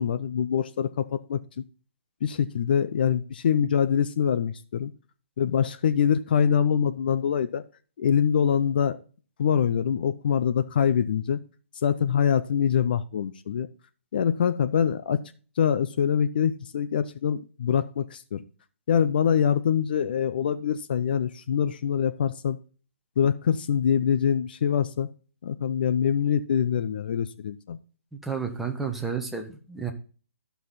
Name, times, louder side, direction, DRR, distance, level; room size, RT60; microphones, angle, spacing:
voice 1, 0.0-1.6 2.2-4.9 5.4-7.6 8.0-9.0 9.4-11.4 11.8-13.7 14.1-15.2 15.6-18.4 18.9-22.6 23.2-25.1 25.4-27.8, left 8 dB, 45° left, 12 dB, 0.7 m, -24 dB
voice 2, 28.2-29.9, right 6 dB, ahead, 2 dB, 1.3 m, -31 dB
14.0 x 5.8 x 4.2 m, 0.38 s
figure-of-eight pair, 135°, 7 cm